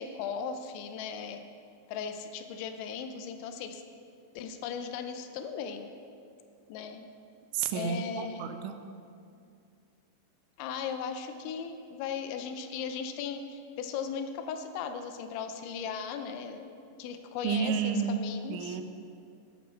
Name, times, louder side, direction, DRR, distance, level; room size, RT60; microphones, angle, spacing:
voice 1, 0.0-1.4 1.9-3.8 4.4-5.9 6.7-7.1 7.7-8.6 10.6-16.7 17.0-18.8, left 6 dB, 80° left, 7 dB, 2.9 m, -37 dB
voice 2, 7.5-8.8 17.4-18.2 18.5-18.8, right 7 dB, 85° right, 8 dB, 3.0 m, -31 dB
10.0 x 8.5 x 6.3 m, 2.4 s
omnidirectional pair, 5.4 m